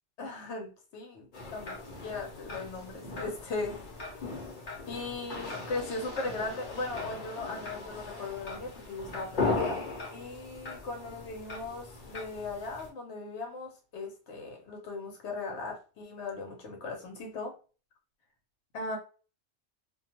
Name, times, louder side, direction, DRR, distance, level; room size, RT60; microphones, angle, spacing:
voice 1, 0.2-4.3 4.9-9.8 10.1-17.5 18.7-19.0, left 3 dB, 85° left, 2 dB, 1.0 m, -38 dB
sound 1, 1.3-12.9, left 3 dB, 50° left, 0.9 m, -38 dB
2.4 x 2.2 x 2.8 m, 0.35 s
omnidirectional pair, 1.1 m